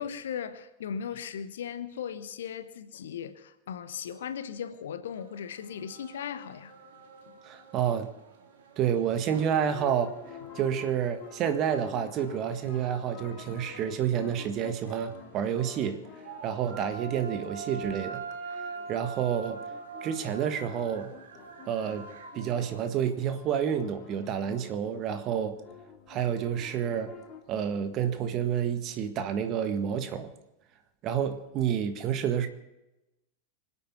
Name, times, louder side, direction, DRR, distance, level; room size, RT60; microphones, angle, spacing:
voice 1, 0.0-6.7, left 8 dB, 60° left, 1.1 m, -37 dB
sound 1, 5.1-22.9, right 5 dB, 60° right, 2.4 m, -45 dB
voice 2, 7.4-8.1 8.8-10.1 10.5-16.0 16.4-18.2 18.9-19.6 20.0-21.1 21.7-22.1 22.3-25.6 26.1-27.2 27.5-30.3 31.0-32.5, right 8 dB, 35° right, 1.7 m, -29 dB
sound 2, 9.3-27.4, left 7 dB, 35° left, 2.3 m, -49 dB
25.0 x 8.5 x 6.0 m
figure-of-eight pair, 90°, 0 cm